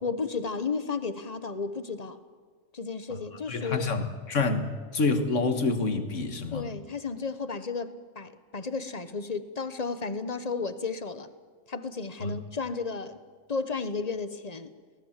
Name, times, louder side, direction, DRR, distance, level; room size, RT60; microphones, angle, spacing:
voice 1, 0.0-2.2 2.7-3.9 6.5-11.3 11.7-13.2 13.5-14.7, left 4 dB, 30° left, 12 dB, 1.0 m, -33 dB
voice 2, 3.5-6.6 12.2-12.4, left 3 dB, 55° left, 8 dB, 1.9 m, -27 dB
24.5 x 18.5 x 7.4 m, 1.5 s
omnidirectional pair, 1.6 m